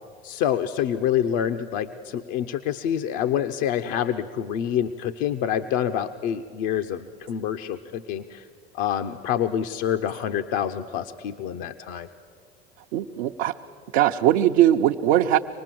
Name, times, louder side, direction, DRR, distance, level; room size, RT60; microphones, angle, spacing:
voice 1, 0.2-8.5 8.7-12.1, left 9 dB, 65° left, 7 dB, 0.8 m, -27 dB
voice 2, 12.9-13.5 13.9-15.4, right 12 dB, 75° right, 2 dB, 0.7 m, -20 dB
25.0 x 19.5 x 7.6 m, 2.3 s
hypercardioid pair, 85°, 31 cm